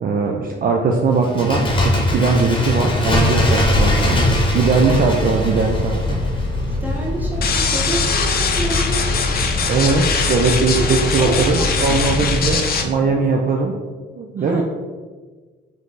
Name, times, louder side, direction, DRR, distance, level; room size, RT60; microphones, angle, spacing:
voice 1, 0.0-4.3 4.5-6.2 9.7-13.7 14.1-14.6, right 4 dB, 45° right, 1 dB, 0.5 m, -19 dB
Bird, 1.2-6.8 7.0-7.1, left 1 dB, 25° left, 0.9 m, -20 dB
sound 1, 3.7-12.6, left 1 dB, 75° right, 1.5 m, -24 dB
voice 2, 6.7-9.8 10.7-13.3 14.4-14.6, right 1 dB, 10° right, -3 dB, 1.2 m, -30 dB
sound 2, 7.4-12.8, left 5 dB, 50° left, 0.6 m, -22 dB
3.3 x 3.2 x 3.9 m, 1.4 s
cardioid pair, 90°, 20 cm